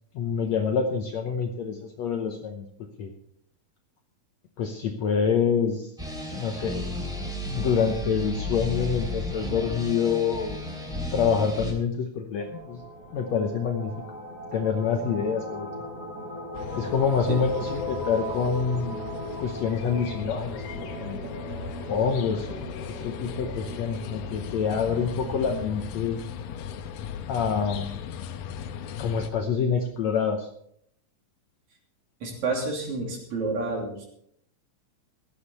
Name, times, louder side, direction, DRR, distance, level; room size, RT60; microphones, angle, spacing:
voice 1, 0.2-2.7 3.0-3.1 4.6-5.9 6.3-6.9 7.5-10.6 11.1-12.8 13.1-13.9 14.5-15.7 16.8-19.0 19.4-21.2 21.9-26.2 27.3-28.0 29.0-30.5, left 6 dB, 65° left, 4 dB, 1.8 m, -26 dB
sound 1, 6.0-11.7, equal, ahead, 2.7 m, -33 dB
sound 2, 12.4-25.5, right 1 dB, 30° right, 3.1 m, -38 dB
sound 3, 16.5-29.3, left 8 dB, 90° left, 2.7 m, -37 dB
voice 2, 32.2-34.1, right 3 dB, 55° right, 0 dB, 4.2 m, -29 dB
15.5 x 11.5 x 4.2 m, 0.69 s
omnidirectional pair, 4.0 m